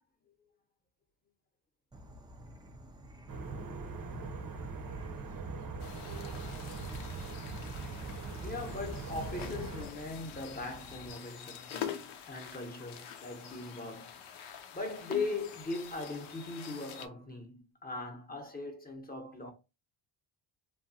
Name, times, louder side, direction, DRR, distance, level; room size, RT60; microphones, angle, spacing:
Insect / Frog, 1.9-11.1, right 1 dB, 10° right, 0.3 m, -52 dB
sound 1, 3.3-9.9, right 4 dB, 45° right, 0.7 m, -41 dB
sound 2, 5.8-17.1, left 9 dB, 70° left, 0.7 m, -46 dB
voice 1, 8.4-14.5 14.7-19.5, left 3 dB, 20° left, 0.9 m, -40 dB
2.9 x 2.3 x 2.7 m
cardioid pair, 90°, 49 cm